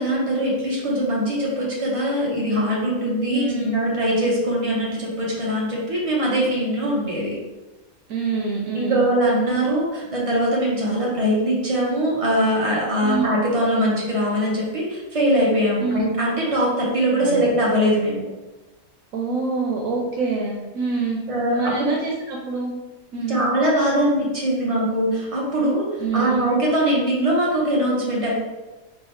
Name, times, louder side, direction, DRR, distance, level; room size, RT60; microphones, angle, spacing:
voice 1, 0.0-7.3 8.7-18.2 21.3-21.7 23.3-25.9 26.1-28.3, equal, 30° right, -5 dB, 0.9 m, -22 dB
voice 2, 3.3-3.8 8.1-9.1 13.0-13.3 15.8-16.0 17.2-17.5 19.1-21.2 21.5-22.7 23.1-23.4 26.0-26.5, right 4 dB, 85° right, -1 dB, 1.1 m, -26 dB
3.6 x 3.2 x 3.1 m, 1.2 s
omnidirectional pair, 1.4 m